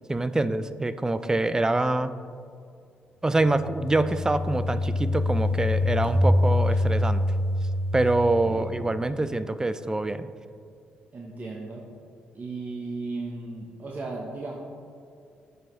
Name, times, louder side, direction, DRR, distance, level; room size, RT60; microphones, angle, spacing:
voice 1, 0.1-2.1 3.2-7.2 7.9-10.3, right 2 dB, 15° right, 13 dB, 0.3 m, -25 dB
sound 1, 3.4-9.0, left 1 dB, 60° left, 1.5 m, -25 dB
voice 2, 8.5-8.9 11.1-11.8 12.3-14.5, right 3 dB, 45° right, -2 dB, 0.9 m, -36 dB
7.8 x 5.2 x 3.1 m, 2.4 s
supercardioid pair, 55°, 4 cm